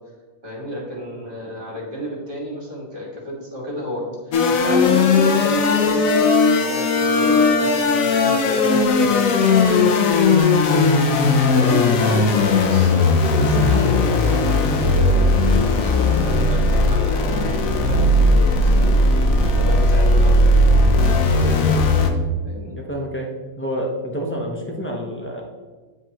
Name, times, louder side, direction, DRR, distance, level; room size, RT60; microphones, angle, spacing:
voice 1, 0.4-6.3 6.5-9.2 9.5-9.9 10.7-11.1 11.4-13.1 13.3-21.9 22.4-22.8, equal, 40° right, -3 dB, 2.0 m, -31 dB
sound 1, 4.3-22.1, left 3 dB, 85° left, 1.1 m, -17 dB
voice 2, 11.8-12.4 22.7-23.3 23.6-25.4, equal, 10° left, 0 dB, 0.6 m, -28 dB
9.7 x 3.5 x 2.9 m, 1.3 s
omnidirectional pair, 1.4 m